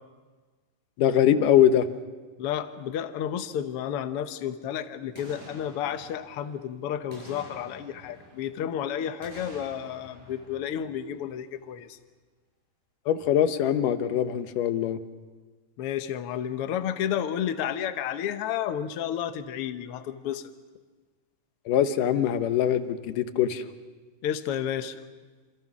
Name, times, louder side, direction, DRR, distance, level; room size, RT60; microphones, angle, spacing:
voice 1, 1.0-1.9 13.1-15.0 21.7-23.6, left 10 dB, 80° left, 10 dB, 2.6 m, -22 dB
voice 2, 2.4-12.0 15.8-20.5 24.2-25.0, left 9 dB, 65° left, 9 dB, 1.5 m, -31 dB
Boom, 5.1-6.7 7.1-8.7 9.2-11.5 11.8-11.9, right 1 dB, 70° right, 9.6 m, -49 dB
28.0 x 27.0 x 6.1 m, 1.4 s
omnidirectional pair, 3.8 m